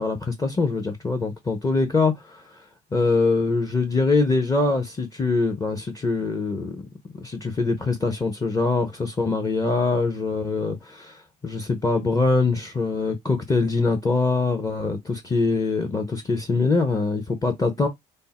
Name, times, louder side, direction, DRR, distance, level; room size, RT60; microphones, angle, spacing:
voice 1, 0.0-2.6 2.9-6.8 7.2-17.9, left 3 dB, 20° left, 0.8 m, -23 dB
3.4 x 2.1 x 4.1 m
cardioid pair, 110°, 17 cm